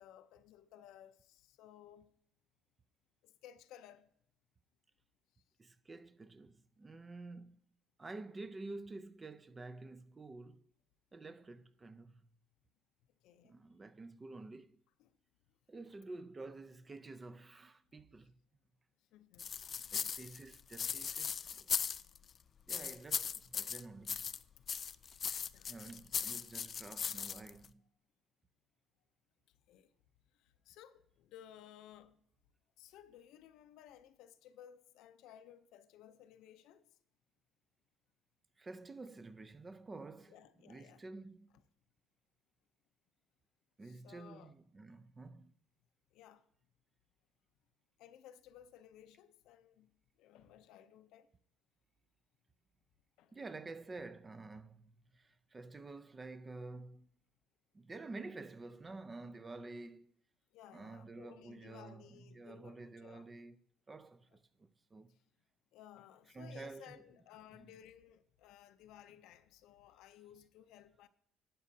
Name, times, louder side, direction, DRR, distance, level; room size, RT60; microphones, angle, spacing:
voice 1, 0.0-2.1 3.2-4.1 13.2-13.6 15.0-15.2 19.1-19.5 24.7-24.8 25.5-25.8 29.5-29.9 30.3-32.2 32.8-36.9 40.3-41.0 43.8-44.5 46.1-46.5 48.0-51.3 53.2-53.4 60.5-63.3 65.1-65.2 65.7-71.1, left 10 dB, 80° left, 0.6 m, -58 dB
voice 2, 5.6-7.6 8.0-10.6 11.1-12.3 13.4-14.8 15.7-18.3 19.9-21.7 22.7-24.4 25.1-25.2 25.7-27.8 38.6-40.4 40.6-41.6 43.8-45.5 53.3-57.1 57.7-60.1 60.7-63.6 63.9-65.2 66.3-67.0 67.6-67.7, right 3 dB, 20° right, 0.5 m, -50 dB
sound 1, 19.4-22.3 22.7-24.4 24.7-27.7, left 7 dB, 40° left, 0.3 m, -38 dB
12.0 x 8.3 x 2.7 m
cardioid pair, 120°, 0 cm